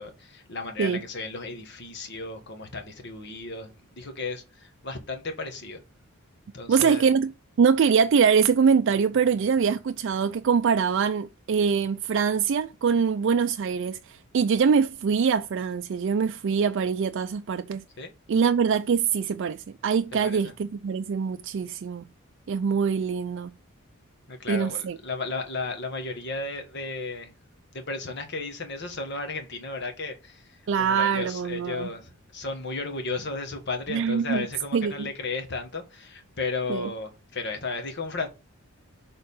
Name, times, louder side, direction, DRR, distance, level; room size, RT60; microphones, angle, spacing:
voice 1, 0.0-5.8 6.5-7.0 18.0-18.1 20.1-20.5 24.3-27.3 27.7-38.3, left 3 dB, 50° left, 1.5 m, -34 dB
voice 2, 6.7-7.3 7.6-17.8 18.3-22.0 22.5-23.5 24.5-25.0 30.7-31.9 33.9-34.5 34.7-35.1 36.7-36.9, right 6 dB, 55° right, 0.3 m, -23 dB
6.5 x 3.8 x 5.4 m
head